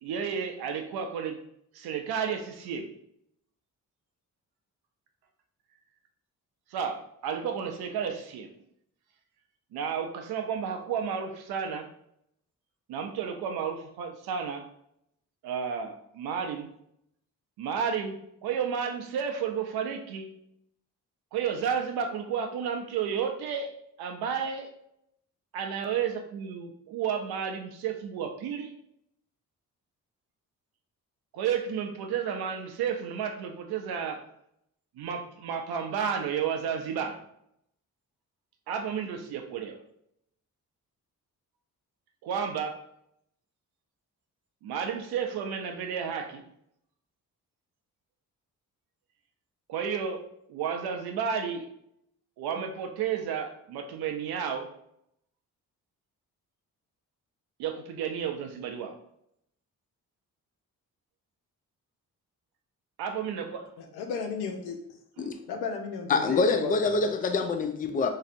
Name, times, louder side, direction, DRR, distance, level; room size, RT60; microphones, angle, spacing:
voice 1, 0.0-1.4 1.7-2.9 6.7-8.5 9.7-11.9 12.9-14.6 15.4-16.7 17.6-20.3 21.3-24.7 25.5-28.7 31.3-34.2 35.0-37.2 38.7-39.8 42.2-42.8 44.6-46.4 49.7-51.7 52.4-54.7 57.6-59.0 63.0-63.7, right 7 dB, 80° right, 0.6 m, -32 dB
voice 2, 63.8-65.0 65.5-67.1, left 5 dB, 85° left, 0.6 m, -34 dB
voice 3, 66.1-68.1, left 4 dB, 25° left, 0.4 m, -25 dB
3.2 x 2.7 x 2.5 m
supercardioid pair, 60°, 37 cm